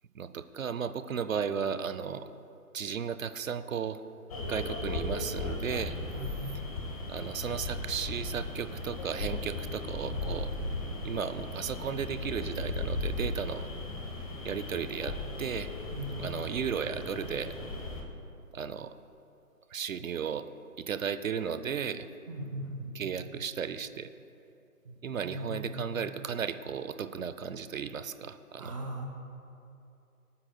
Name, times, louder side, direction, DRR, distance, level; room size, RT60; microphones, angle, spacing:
voice 1, 0.1-2.3 2.7-4.0 4.5-6.0 7.1-10.5 11.0-13.7 14.4-15.7 16.2-17.5 18.5-18.9 19.7-20.5 20.8-22.1 22.9-24.1 25.0-28.7, right 7 dB, 60° right, 12 dB, 0.7 m, -35 dB
sound 1, 4.3-18.0, left 2 dB, 25° left, 1.0 m, -37 dB
voice 2, 15.9-16.2 22.3-23.1 24.8-24.9 25.2-25.9 28.6-29.0, right 1 dB, 20° right, 0 dB, 0.9 m, -39 dB
27.0 x 9.6 x 2.3 m, 2.6 s
hypercardioid pair, 160°, 45 cm